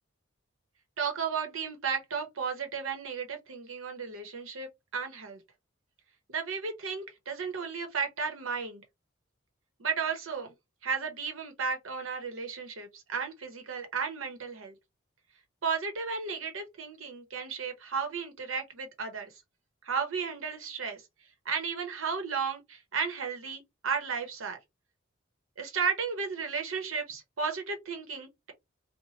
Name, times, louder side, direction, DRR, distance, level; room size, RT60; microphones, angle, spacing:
voice 1, 1.0-5.4 6.3-8.8 9.8-10.5 10.8-14.7 15.6-19.3 19.8-21.0 21.5-24.6 25.6-28.5, right 5 dB, 90° right, 0.8 m, -34 dB
2.7 x 2.1 x 3.1 m
head